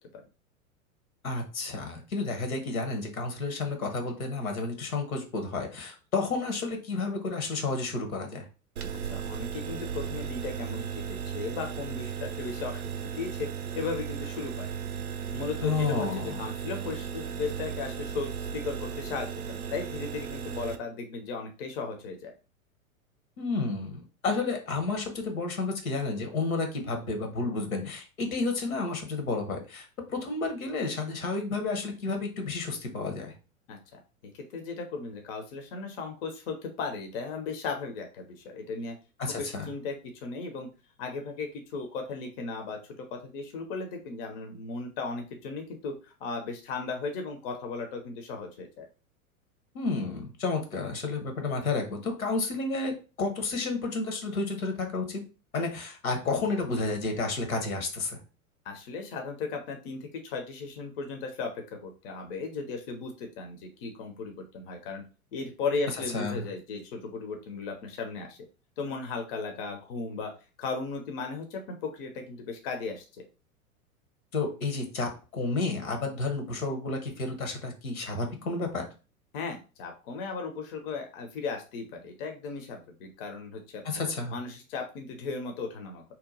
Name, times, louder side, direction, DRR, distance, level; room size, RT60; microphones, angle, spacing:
voice 1, 1.2-8.5 15.6-16.4 23.4-33.3 39.2-39.7 49.7-55.2 55.5-58.2 66.1-66.5 74.3-78.8 83.8-84.3, left 3 dB, 75° left, 5 dB, 1.1 m, -31 dB
sound 1, 8.8-20.8, right 7 dB, 85° right, 0.5 m, -36 dB
voice 2, 9.0-13.5 13.7-14.7 15.3-22.3 33.7-33.8 34.3-39.0 39.2-40.7 41.0-42.8 43.1-48.8 58.6-65.0 65.3-68.4 68.8-70.3 70.6-73.0 79.3-84.0 84.3-86.0, left 4 dB, 40° left, 4 dB, 0.6 m, -36 dB
2.8 x 2.2 x 3.8 m, 0.33 s
figure-of-eight pair, 100°, 43 cm